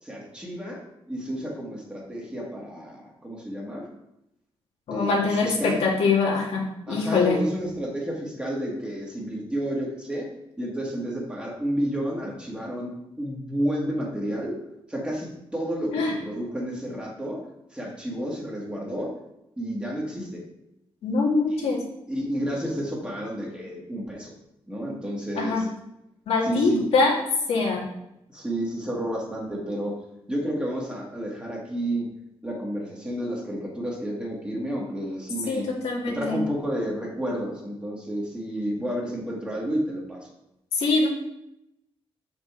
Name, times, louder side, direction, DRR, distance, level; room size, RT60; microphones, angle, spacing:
voice 1, 0.0-0.8 1.1-3.9 4.9-5.8 6.9-10.3 10.6-12.9 13.2-14.5 14.9-17.4 17.7-19.1 19.6-20.4 21.5-21.8 22.1-24.3 24.7-25.7 26.4-26.9 28.3-30.0 30.3-32.1 32.4-35.7 36.0-40.3, right 1 dB, 10° right, -2 dB, 1.7 m, -31 dB
voice 2, 4.9-7.4 15.9-16.1 21.0-21.8 25.4-25.6 26.3-27.1 27.5-27.8 35.5-36.4 40.7-41.1, left 4 dB, 85° left, -2 dB, 1.9 m, -23 dB
7.1 x 5.2 x 4.9 m, 0.84 s
wide cardioid pair, 165°, 10 cm